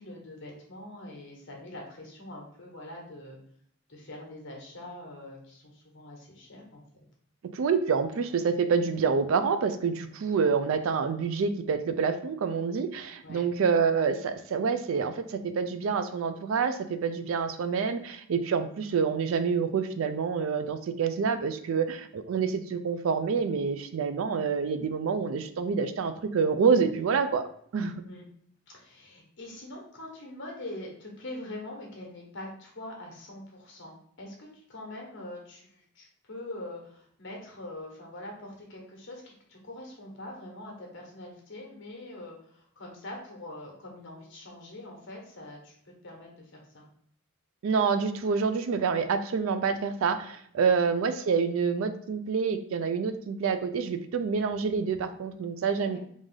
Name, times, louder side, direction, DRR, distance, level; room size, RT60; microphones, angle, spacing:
voice 1, 0.0-3.4 3.9-6.8 13.2-13.4 28.0-28.2 28.7-46.9 50.7-50.8 55.9-56.0, left 1 dB, 60° left, -1 dB, 1.1 m, -43 dB
voice 2, 7.5-27.5 27.7-27.9 47.6-56.0, right 5 dB, 70° right, 10 dB, 0.4 m, -27 dB
3.2 x 2.6 x 3.6 m, 0.65 s
head